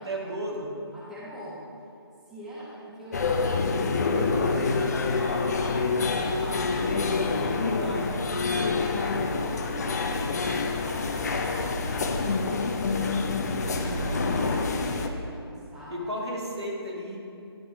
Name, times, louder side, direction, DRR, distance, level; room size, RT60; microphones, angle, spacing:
voice 1, 0.0-0.7 7.8-8.4 13.6-14.4 14.7-15.1 15.9-17.2, equal, 85° right, -3 dB, 1.8 m, -35 dB
voice 2, 0.9-1.6 2.3-9.1 9.4-10.5 10.8-13.2 14.3-16.1, equal, 5° right, -10 dB, 1.2 m, -42 dB
sound 1, 3.1-15.1, left 4 dB, 40° left, 0.5 m, -27 dB
10.5 x 4.1 x 4.9 m, 2.5 s
figure-of-eight pair, 145°, 13 cm